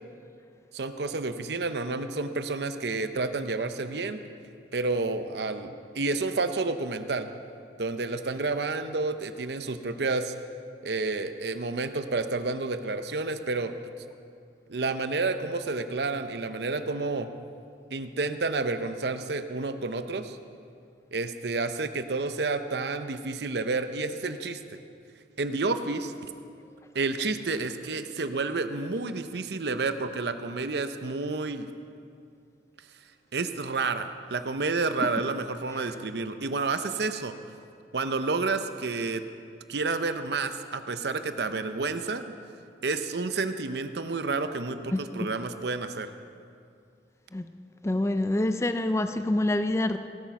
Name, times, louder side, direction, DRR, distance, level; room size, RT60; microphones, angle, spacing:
voice 1, 0.7-4.2 4.7-7.3 7.8-10.3 10.8-13.7 14.7-17.3 17.9-20.4 21.1-24.8 25.4-26.1 26.9-31.7 33.3-37.4 37.9-39.2 39.7-42.3 42.8-46.1, right 3 dB, 65° right, 9 dB, 0.7 m, -30 dB
voice 2, 47.8-50.0, left 1 dB, 15° left, 9 dB, 0.4 m, -26 dB
17.5 x 9.1 x 5.9 m, 2.4 s
head